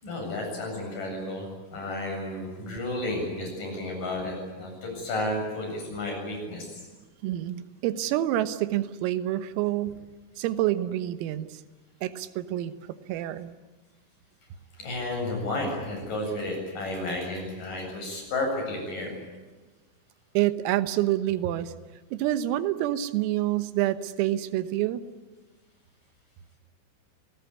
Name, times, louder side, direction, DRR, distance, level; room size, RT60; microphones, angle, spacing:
voice 1, 0.0-1.5 1.7-6.8 14.8-19.1, left 2 dB, 40° left, 2 dB, 9.3 m, -32 dB
voice 2, 7.2-10.0 10.4-11.6 12.0-13.5 20.4-21.7 22.1-25.0, right 14 dB, 90° right, 12 dB, 3.8 m, -27 dB
29.5 x 18.5 x 9.8 m, 1.2 s
omnidirectional pair, 5.9 m